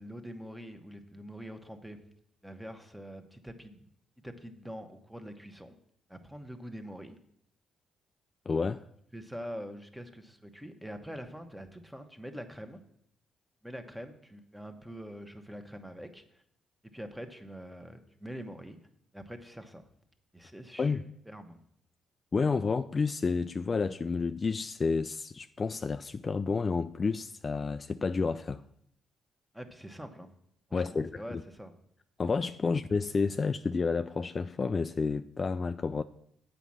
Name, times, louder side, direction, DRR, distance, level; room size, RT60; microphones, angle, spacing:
voice 1, 0.0-2.0 2.4-3.8 4.2-5.7 6.1-7.2 9.1-12.8 13.6-16.4 16.9-18.8 19.1-19.8 20.3-21.6 29.5-30.3 30.7-31.7 32.6-32.7, equal, 5° right, 1.0 m, -44 dB
voice 2, 8.5-8.8 20.8-21.0 22.3-28.6 30.7-31.4 32.2-36.0, left 4 dB, 35° left, 0.3 m, -30 dB
8.1 x 5.2 x 7.3 m
cardioid pair, 90°, 0 cm